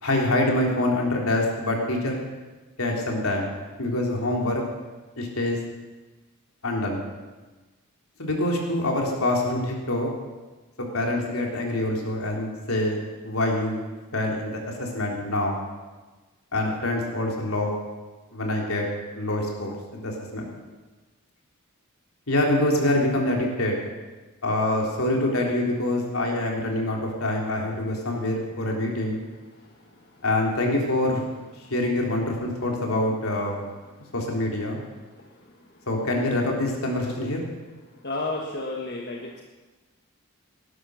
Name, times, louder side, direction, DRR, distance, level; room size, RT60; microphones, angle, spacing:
voice 1, 0.0-2.2 2.8-3.5 3.8-4.6 5.2-5.6 6.6-7.0 8.2-10.1 10.9-13.0 13.2-13.8 14.1-15.6 16.5-17.7 18.3-18.9 19.1-20.5 22.3-23.9 24.4-29.2 30.2-31.2 31.7-33.6 34.1-34.8 35.9-37.4, left 1 dB, 75° left, 0 dB, 3.6 m, -25 dB
voice 2, 38.0-39.4, left 2 dB, 50° left, 0 dB, 1.5 m, -31 dB
19.0 x 11.5 x 6.4 m, 1.3 s
head